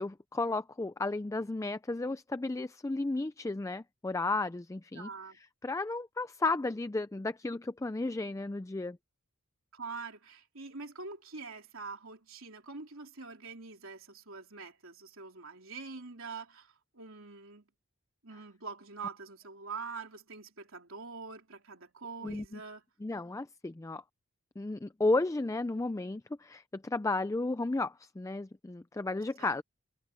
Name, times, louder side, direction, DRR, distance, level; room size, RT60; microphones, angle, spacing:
voice 1, 0.0-5.1 5.6-9.0 22.2-22.6 23.0-24.0 24.6-29.6, left 2 dB, 15° left, 0.4 m, -33 dB
voice 2, 4.9-5.4 9.7-16.7 17.0-17.6 18.2-22.8 29.4-29.5, right 4 dB, 70° right, 3.9 m, -44 dB
head